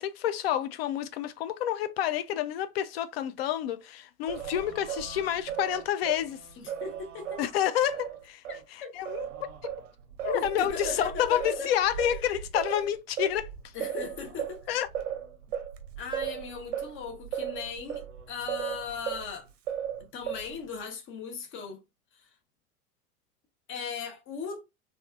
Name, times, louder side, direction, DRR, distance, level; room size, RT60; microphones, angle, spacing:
voice 1, 0.0-6.4 7.4-8.4 8.7-9.3 10.2-13.5 14.7-14.9, left 11 dB, 45° left, 0.5 m, -29 dB
Singing, 4.3-8.6 9.0-19.3 19.7-20.7, right 9 dB, 55° right, 0.6 m, -37 dB
voice 2, 6.6-7.4 8.5-8.9 10.3-11.7 13.7-14.7 16.0-19.5 20.1-21.8 22.1-22.3 23.7-24.6, left 5 dB, 25° left, 0.9 m, -38 dB
3.2 x 2.7 x 2.3 m
figure-of-eight pair, 85°, 45 cm